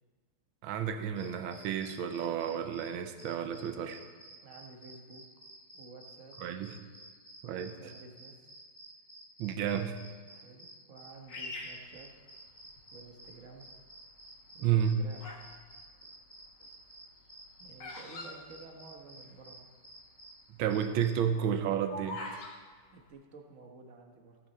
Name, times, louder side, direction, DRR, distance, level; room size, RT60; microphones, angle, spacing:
voice 1, 0.6-4.0 6.4-6.8 7.4-7.7 9.4-10.0 14.6-15.0 20.5-22.5, right 8 dB, 75° right, 9 dB, 1.6 m, -31 dB
sound 1, 1.2-21.1, right 1 dB, 20° right, 1.8 m, -53 dB
voice 2, 4.4-5.2 5.7-6.3 7.4-8.5 10.3-12.1 12.9-13.7 14.5-15.3 17.6-19.7 22.9-24.4, right 3 dB, 40° right, 2 dB, 1.5 m, -52 dB
Bird vocalization bird call bird song, 11.3-12.8 13.4-13.9 14.6-15.5 15.8-19.3 19.6-19.7 19.8-20.2 20.6-22.5, left 2 dB, 60° left, 2.1 m, -44 dB
17.0 x 9.2 x 4.3 m, 1.5 s
omnidirectional pair, 2.3 m